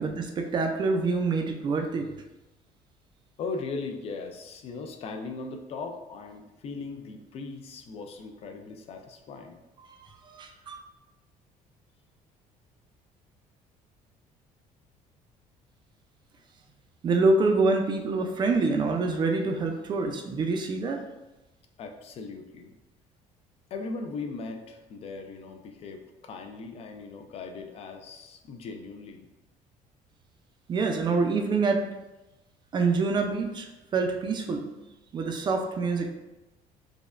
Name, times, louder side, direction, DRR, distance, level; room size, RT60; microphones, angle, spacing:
voice 1, 0.0-2.1 9.8-9.9 10.3-10.8 17.0-21.0 30.7-31.8 32.7-33.7 33.9-34.7 35.1-36.1, right 3 dB, 30° right, 3 dB, 0.4 m, -26 dB
voice 2, 3.4-9.6 21.8-22.7 23.7-29.3, left 4 dB, 45° left, 5 dB, 0.5 m, -38 dB
5.0 x 2.2 x 2.4 m, 1.0 s
cardioid pair, 145°, 14 cm